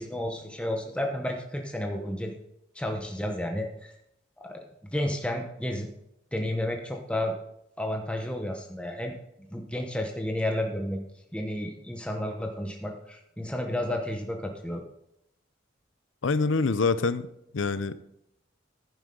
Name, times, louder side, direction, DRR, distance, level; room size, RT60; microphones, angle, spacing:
voice 1, 0.0-2.3 2.7-3.9 4.4-5.9 6.3-7.3 7.8-9.1 9.5-11.0 11.3-14.8, left 1 dB, 5° left, 2 dB, 1.0 m, -31 dB
voice 2, 16.2-17.3 17.5-18.0, left 4 dB, 80° left, 14 dB, 0.6 m, -25 dB
11.5 x 9.8 x 3.8 m, 0.77 s
head